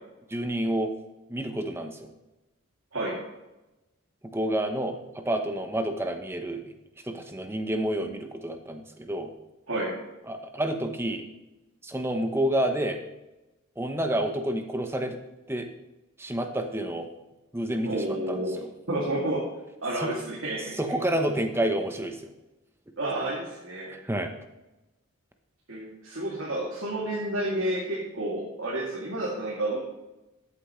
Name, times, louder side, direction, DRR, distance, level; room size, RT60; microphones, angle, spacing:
voice 1, 0.3-0.9 1.3-2.1 4.2-6.7 7.0-9.3 10.3-11.2 11.8-13.0 13.8-15.2 15.5-15.7 16.2-17.1 17.5-18.7 20.0-20.2 20.8-22.2 23.9-24.3, right 1 dB, 10° right, 6 dB, 0.9 m, -29 dB
voice 2, 17.8-19.4 19.8-20.8 23.0-23.9 25.7-29.8, right 1 dB, 75° right, -6 dB, 2.5 m, -30 dB
13.5 x 8.3 x 3.2 m, 1.0 s
head